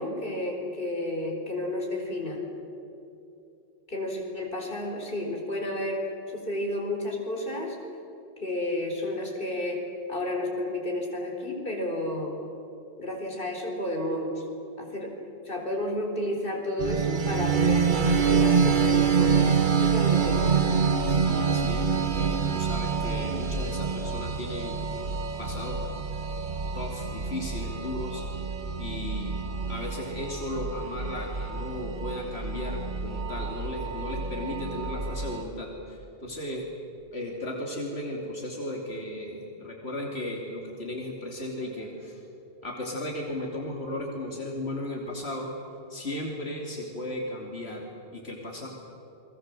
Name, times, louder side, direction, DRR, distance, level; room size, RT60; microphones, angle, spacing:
voice 1, 0.0-2.4 3.9-6.0 6.3-7.8 8.4-9.8 10.1-12.4 13.0-14.4 14.8-15.1 15.4-19.5 19.8-20.7, left 1 dB, 60° left, 1 dB, 4.5 m, -31 dB
sound 1, 16.8-35.4, right 6 dB, 50° right, 1.3 m, -27 dB
voice 2, 21.1-25.9 26.7-28.2 28.8-29.4 29.7-36.6 37.1-42.2 42.6-45.5 45.9-48.7, left 1 dB, 85° left, -1 dB, 3.2 m, -35 dB
29.5 x 22.0 x 7.6 m, 2.8 s
omnidirectional pair, 1.1 m